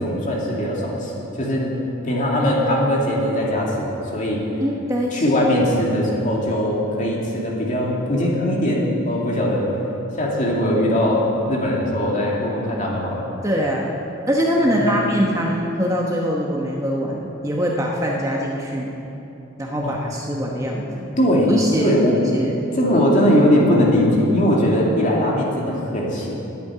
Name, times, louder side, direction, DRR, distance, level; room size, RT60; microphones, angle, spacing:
voice 1, 0.0-1.7 2.0-4.4 5.1-9.7 10.1-13.3 14.6-15.0 19.8-20.0 21.2-21.5 21.8-22.2 22.7-26.5, equal, 35° left, -3 dB, 2.5 m, -20 dB
voice 2, 4.6-5.2 13.4-13.9 14.3-18.9 19.6-21.1 21.5-21.9 22.3-22.6, equal, 15° right, -2 dB, 1.0 m, -23 dB
10.5 x 8.7 x 9.9 m, 2.9 s
head